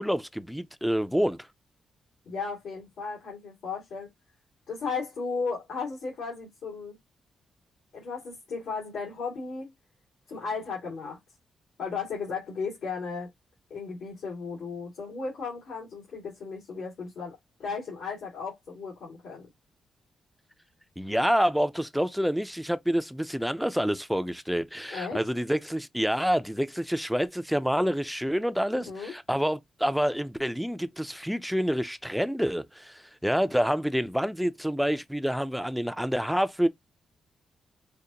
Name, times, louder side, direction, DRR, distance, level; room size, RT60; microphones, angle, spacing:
voice 1, 0.0-1.4 21.0-36.7, equal, ahead, 0.3 m, -27 dB
voice 2, 2.3-4.1 4.7-7.0 7.9-9.7 10.3-11.2 11.8-13.3 13.7-19.5 24.9-25.2 28.7-29.1, left 5 dB, 85° left, 2.2 m, -35 dB
4.9 x 2.1 x 2.8 m
cardioid pair, 105°, 0 cm